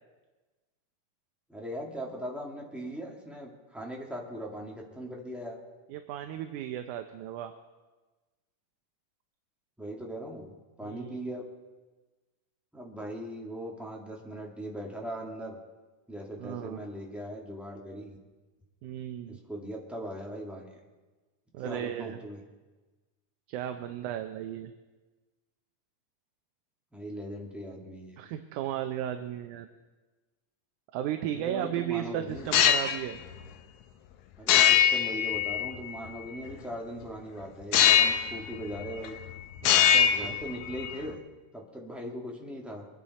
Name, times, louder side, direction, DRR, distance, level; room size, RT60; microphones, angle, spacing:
voice 1, 1.5-5.6 9.8-10.5 10.8-11.5 12.7-15.6 16.1-18.2 19.3-20.7 21.6-22.4 26.9-28.2 31.3-32.5 34.4-39.2 40.1-41.2 41.5-42.9, equal, ahead, -2 dB, 1.0 m, -39 dB
voice 2, 5.9-7.5 10.8-11.2 16.4-16.8 18.8-19.4 21.5-22.2 23.5-24.7 28.2-29.7 30.9-33.2 39.6-40.4, right 11 dB, 75° right, 7 dB, 2.0 m, -35 dB
sound 1, 32.4-33.0 34.5-36.0 37.7-38.4 38.7-39.3 39.6-41.0, left 9 dB, 75° left, 2.0 m, -22 dB
23.0 x 10.5 x 4.2 m, 1.2 s
omnidirectional pair, 3.7 m